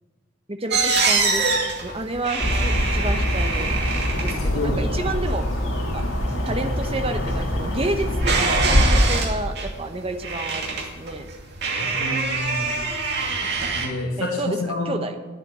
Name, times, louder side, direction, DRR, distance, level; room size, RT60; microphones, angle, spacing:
voice 1, 0.5-3.7 4.2-5.5 5.9-6.0 6.4-11.3 14.2-15.2, right 2 dB, 25° right, 6 dB, 1.0 m, -30 dB
sound 1, 0.7-13.9, right 4 dB, 50° right, 2.6 m, -26 dB
sound 2, 2.4-9.0, left 1 dB, 65° left, 2.6 m, -24 dB
voice 2, 4.3-4.9 11.7-12.9 13.7-15.0, left 1 dB, 85° left, -3 dB, 2.0 m, -29 dB
11.0 x 8.6 x 9.6 m, 1.3 s
head